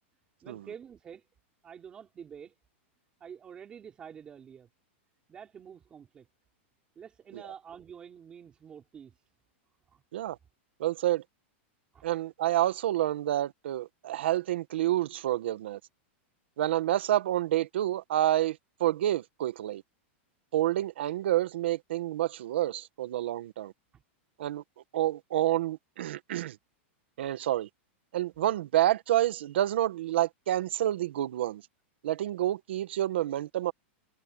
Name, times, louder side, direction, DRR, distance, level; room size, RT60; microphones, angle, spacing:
voice 1, 0.4-1.3 1.6-2.5 3.2-4.7 5.3-6.3 6.9-9.2 9.9-10.0 11.9-12.0 23.9-24.0, right 7 dB, 15° right, 4.8 m, -48 dB
voice 2, 10.8-11.2 12.0-15.8 16.6-19.8 20.5-23.7 24.4-24.6 24.9-26.6 27.2-27.7 28.1-31.6 32.0-33.7, right 13 dB, 65° right, 1.5 m, -28 dB
supercardioid pair, 180°, 7 cm